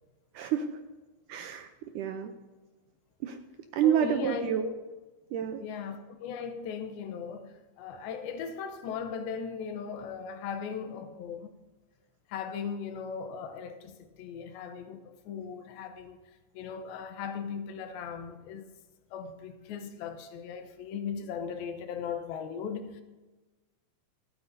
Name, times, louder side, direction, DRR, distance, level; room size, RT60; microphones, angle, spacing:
voice 1, 0.3-0.8 1.3-2.3 3.2-3.4 3.7-4.7 5.3-5.6, right 9 dB, 80° right, 1.9 m, -29 dB
voice 2, 3.8-4.7 5.6-11.5 12.3-16.2 16.5-18.7 19.1-23.0, left 6 dB, 85° left, 2.7 m, -38 dB
26.0 x 8.7 x 2.7 m
omnidirectional pair, 4.2 m